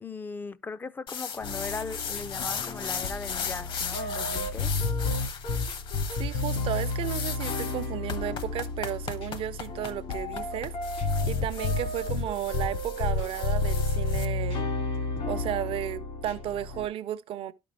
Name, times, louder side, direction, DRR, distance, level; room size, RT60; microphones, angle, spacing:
voice 1, 0.0-4.7, left 4 dB, 20° left, 0.4 m, -38 dB
sound 1, 1.1-14.2, left 6 dB, 55° left, 1.0 m, -37 dB
sound 2, 1.4-16.9, left 3 dB, 75° left, 2.3 m, -31 dB
voice 2, 6.2-10.7 11.3-14.7 15.3-17.5, right 11 dB, 60° right, 0.7 m, -33 dB
12.0 x 5.2 x 3.3 m
cardioid pair, 130°, 10 cm